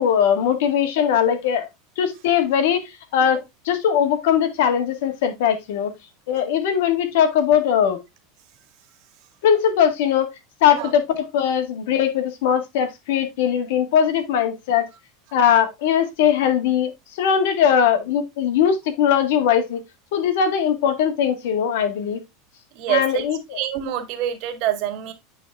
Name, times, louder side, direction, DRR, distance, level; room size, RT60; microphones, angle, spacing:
voice 1, 0.0-1.7 2.0-3.4 3.7-5.9 6.3-8.0 9.4-10.3 10.6-14.9 15.3-19.8 20.1-22.2 22.9-23.6, left 8 dB, 75° left, 1.9 m, -20 dB
voice 2, 22.7-23.2 23.5-25.1, right 11 dB, 60° right, 1.7 m, -25 dB
9.3 x 4.1 x 3.5 m
supercardioid pair, 110°, 0 cm